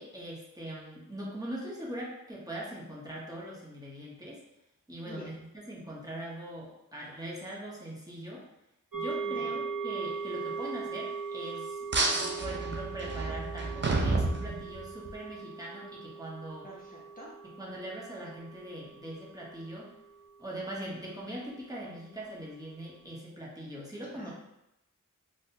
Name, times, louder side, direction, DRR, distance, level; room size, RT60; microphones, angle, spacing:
voice 1, 0.0-4.4 4.9-8.5 8.9-11.9 12.4-16.7 17.6-19.9 20.4-24.3, right 1 dB, 10° right, -6 dB, 0.8 m, -41 dB
sound 1, 8.9-20.6 21.0-21.1, right 5 dB, 85° right, 0.9 m, -40 dB
sound 2, 11.9-15.1, right 3 dB, 35° right, 0.5 m, -30 dB
voice 2, 16.6-17.3 24.1-24.3, equal, 25° left, -5 dB, 0.6 m, -47 dB
3.9 x 2.1 x 2.7 m, 0.88 s
wide cardioid pair, 50°, 33 cm